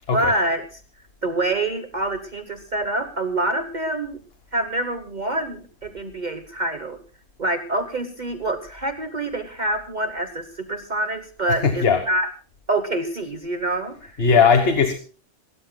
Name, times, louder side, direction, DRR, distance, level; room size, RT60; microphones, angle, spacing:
voice 1, 0.1-0.7 1.2-4.2 4.5-7.0 7.4-12.3 12.7-14.1, right 2 dB, 40° right, 1.2 m, -26 dB
voice 2, 11.5-12.1 14.2-14.9, left 5 dB, 55° left, 1.5 m, -18 dB
26.5 x 13.0 x 2.3 m
omnidirectional pair, 1.3 m